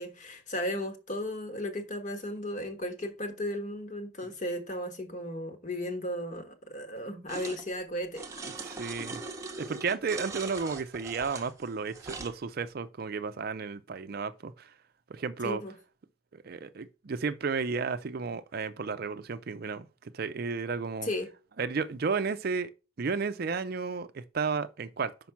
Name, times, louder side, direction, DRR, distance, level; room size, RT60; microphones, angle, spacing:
voice 1, 0.0-8.2 15.4-15.7 21.0-21.3, left 1 dB, 40° left, 1.3 m, -35 dB
sound 1, 7.3-7.6 8.1-12.4, right 3 dB, 15° right, 0.9 m, -41 dB
voice 2, 8.6-9.2 9.6-14.7 15.1-15.6 16.3-21.1 21.6-22.7 23.0-25.1, right 5 dB, 50° right, 0.5 m, -33 dB
5.7 x 5.2 x 5.8 m
head